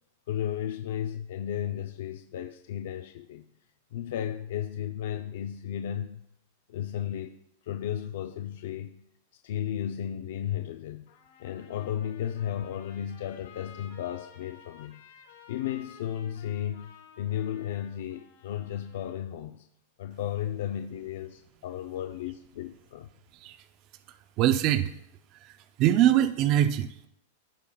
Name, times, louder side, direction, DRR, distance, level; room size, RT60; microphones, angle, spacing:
voice 1, 0.3-3.5 3.9-6.2 6.7-7.4 7.6-9.0 9.4-11.1 11.4-15.0 15.5-19.6 20.0-23.1, left 10 dB, 60° left, 6 dB, 0.4 m, -34 dB
Trumpet, 11.1-19.2, left 8 dB, 80° left, 3.4 m, -54 dB
voice 2, 24.4-24.9 25.4-25.5 25.8-27.1, right 12 dB, 30° right, 11 dB, 0.3 m, -23 dB
14.5 x 5.5 x 2.3 m, 0.76 s
supercardioid pair, 170°, 0 cm